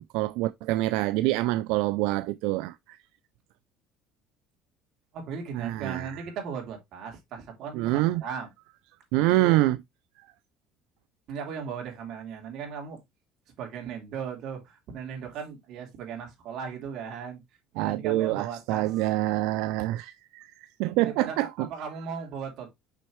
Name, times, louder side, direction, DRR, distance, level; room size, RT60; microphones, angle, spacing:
voice 1, 0.0-3.0 5.5-6.2 7.7-8.2 9.1-9.8 17.8-21.7, right 17 dB, 75° right, 0.3 m, -26 dB
voice 2, 5.1-8.5 9.1-9.6 11.3-13.0 13.6-17.4 17.7-18.8 21.0-22.8, right 6 dB, 50° right, 2.9 m, -37 dB
6.2 x 5.5 x 3.1 m
cardioid pair, 165°, 0 cm